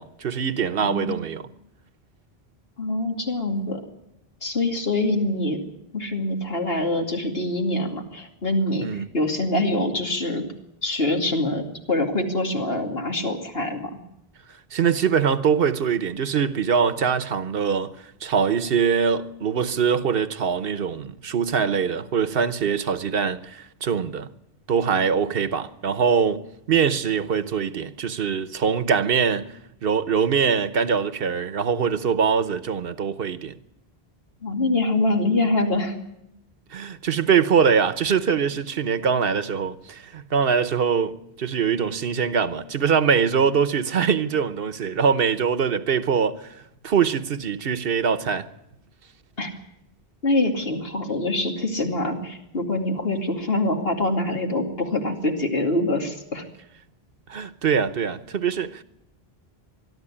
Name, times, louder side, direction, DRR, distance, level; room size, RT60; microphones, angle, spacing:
voice 1, 0.0-1.5 8.8-9.1 14.7-17.9 18.2-24.3 24.7-29.5 29.8-33.5 36.7-46.6 46.8-48.5 57.3-58.8, right 6 dB, 65° right, 1.2 m, -23 dB
voice 2, 0.8-1.2 2.8-3.8 4.4-5.6 5.9-10.4 10.8-14.0 34.4-35.9 49.4-49.5 50.2-56.4, left 2 dB, 70° left, 2.8 m, -25 dB
21.5 x 13.0 x 9.9 m
omnidirectional pair, 1.0 m